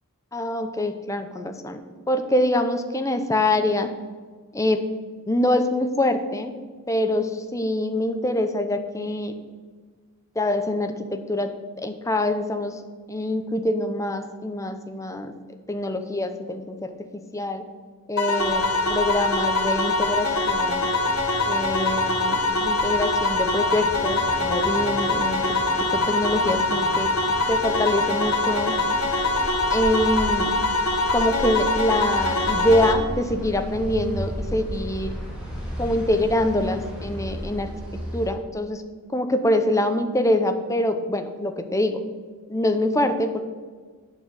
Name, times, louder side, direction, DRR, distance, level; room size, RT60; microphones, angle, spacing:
voice 1, 0.3-1.8 2.1-3.9 4.5-4.8 5.3-6.5 6.9-9.3 10.4-11.5 11.8-12.8 13.1-15.3 15.7-16.9 17.3-17.6 18.1-20.9 21.5-27.1 27.5-28.7 29.7-30.5 31.1-35.1 35.8-37.7 38.1-38.8 39.1-42.0 42.5-43.4, left 1 dB, 15° left, 7 dB, 0.7 m, -24 dB
sound 1, 18.2-32.9, left 2 dB, 70° left, 1.3 m, -23 dB
sound 2, 18.4-38.3, equal, 5° right, 2.8 m, -36 dB
9.1 x 5.9 x 8.0 m, 1.5 s
head